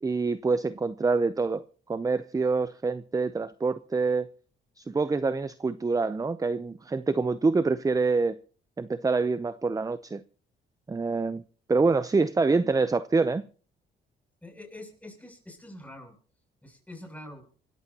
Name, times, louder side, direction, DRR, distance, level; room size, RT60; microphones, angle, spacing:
voice 1, 0.0-1.6 1.9-4.3 4.8-8.4 8.8-10.2 10.9-11.4 11.7-13.4, right 4 dB, 15° right, 0.6 m, -26 dB
voice 2, 14.4-16.2 16.6-17.5, left 1 dB, 5° left, 7.4 m, -45 dB
26.0 x 14.5 x 2.9 m
cardioid pair, 90°, 20 cm